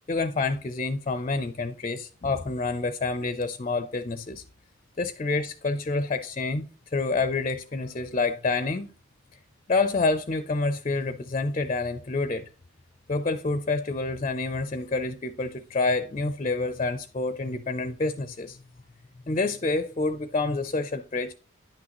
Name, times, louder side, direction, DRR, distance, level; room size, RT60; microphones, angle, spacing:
voice 1, 0.0-4.4 5.0-8.9 9.3-9.4 9.7-12.5 13.1-18.6 19.3-21.3, left 3 dB, 30° left, 0.4 m, -28 dB
10.0 x 6.2 x 2.9 m
head